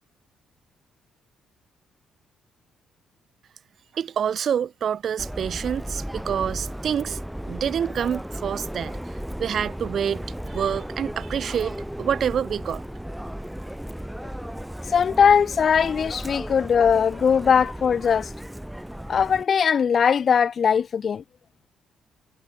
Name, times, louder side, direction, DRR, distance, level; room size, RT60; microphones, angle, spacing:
voice 1, 3.9-7.2 7.5-9.0 9.4-10.2 10.5-12.8, right 8 dB, 60° right, 2.5 m, -27 dB
Subway metro underground, 5.2-19.4, equal, 5° right, 0.8 m, -35 dB
voice 2, 14.9-18.3 19.1-21.2, left 7 dB, 50° left, 0.8 m, -20 dB
cardioid pair, 90°, 0 cm